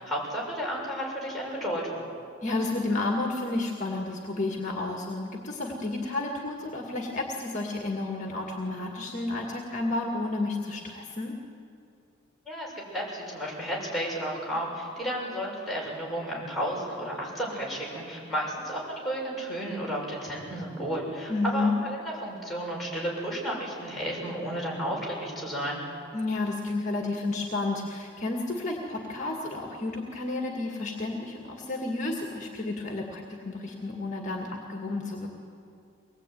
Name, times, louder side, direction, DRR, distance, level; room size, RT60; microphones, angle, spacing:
voice 1, 0.0-2.1 12.5-25.8, equal, ahead, -5 dB, 7.0 m, -32 dB
voice 2, 2.4-11.4 21.3-21.7 26.1-35.3, left 2 dB, 35° left, 1 dB, 2.1 m, -31 dB
24.0 x 20.0 x 9.5 m, 2.6 s
head